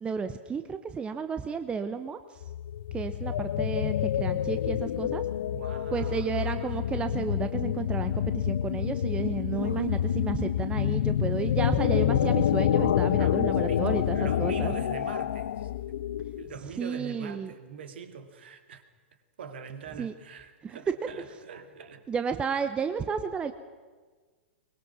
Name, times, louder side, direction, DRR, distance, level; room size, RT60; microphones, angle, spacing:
voice 1, 0.0-2.4 2.9-5.3 5.9-14.7 16.8-17.5 20.0-20.1 20.6-20.8 22.1-23.5, right 5 dB, 15° right, 9 dB, 0.9 m, -32 dB
sound 1, 2.4-16.6, left 11 dB, 55° left, 0.6 m, -28 dB
voice 2, 5.5-6.7 13.2-15.7 16.4-18.8 19.4-22.1, right 6 dB, 60° right, 7 dB, 2.3 m, -43 dB
22.5 x 21.5 x 6.2 m, 1.4 s
figure-of-eight pair, 105°, 7 cm